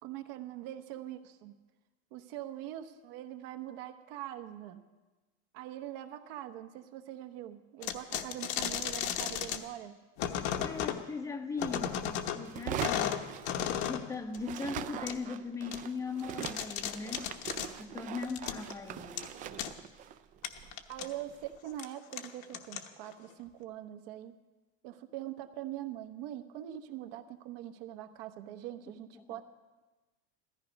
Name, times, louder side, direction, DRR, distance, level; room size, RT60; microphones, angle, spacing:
voice 1, 0.0-1.6 2.1-4.8 5.5-10.0 20.9-24.3 24.8-29.4, right 12 dB, 65° right, 8 dB, 1.2 m, -43 dB
sound 1, 7.8-9.6 10.2-11.0 11.6-12.4 12.8-14.1 14.3-14.4 15.1-15.2 15.7-15.8 16.2-17.7 18.2-18.7 19.2-19.3 19.6-19.7 20.4-21.1 21.7-21.9 22.1-23.1, left 10 dB, 55° left, 1.1 m, -34 dB
voice 2, 10.6-13.2 13.9-17.3 17.8-19.3 29.1-29.4, left 4 dB, 10° left, 8 dB, 0.7 m, -39 dB
sound 2, 12.4-14.1 14.4-21.6, right 10 dB, 25° right, 0.4 m, -42 dB
15.5 x 14.0 x 5.3 m, 1.2 s
supercardioid pair, 160°, 32 cm